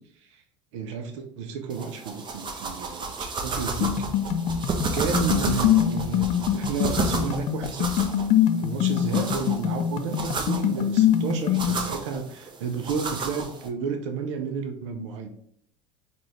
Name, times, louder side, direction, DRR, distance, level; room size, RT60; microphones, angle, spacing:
voice 1, 0.7-4.1 4.8-7.9 8.6-15.5, right 6 dB, 70° right, 5 dB, 0.5 m, -32 dB
sound 1, 1.7-13.7, right 3 dB, 30° right, 0.7 m, -32 dB
sound 2, 3.8-11.8, left 10 dB, 45° left, 0.4 m, -24 dB
3.8 x 2.3 x 3.1 m, 0.64 s
hypercardioid pair, 80°, 17 cm